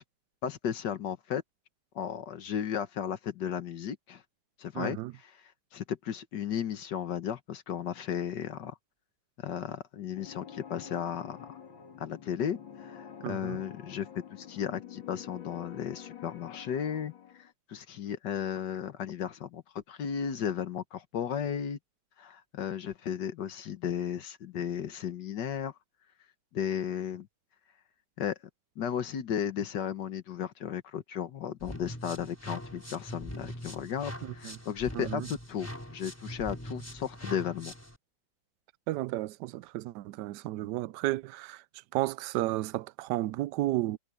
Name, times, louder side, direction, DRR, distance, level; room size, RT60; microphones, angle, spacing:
voice 1, 0.4-1.4 1.9-4.2 4.6-8.7 9.4-11.6 12.0-17.1 17.4-21.8 22.2-25.7 26.5-27.3 28.2-28.3 28.8-37.7, left 8 dB, 65° left, 1.7 m, -35 dB
voice 2, 4.7-5.1 13.2-13.6 34.2-34.6 35.0-35.3 38.9-41.6 41.9-44.0, right 16 dB, 75° right, 1.1 m, -33 dB
sound 1, 10.1-17.5, left 8 dB, 85° left, 2.8 m, -48 dB
sound 2, 31.6-38.0, equal, 5° left, 4.6 m, -42 dB
omnidirectional pair, 2.0 m